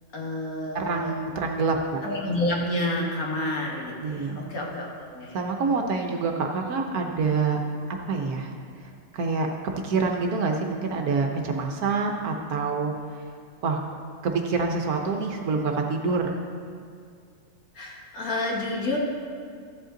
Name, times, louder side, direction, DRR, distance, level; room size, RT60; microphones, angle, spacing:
voice 1, 0.1-1.1 2.0-5.4 17.7-19.0, left 1 dB, 55° left, -2 dB, 1.8 m, -29 dB
voice 2, 0.7-2.0 4.0-4.4 5.3-7.6 8.1-8.5 9.1-9.5 9.8-12.9 13.6-13.8 14.2-16.4, right 4 dB, 65° right, 2 dB, 1.2 m, -26 dB
14.0 x 7.8 x 3.8 m, 2.2 s
omnidirectional pair, 1.9 m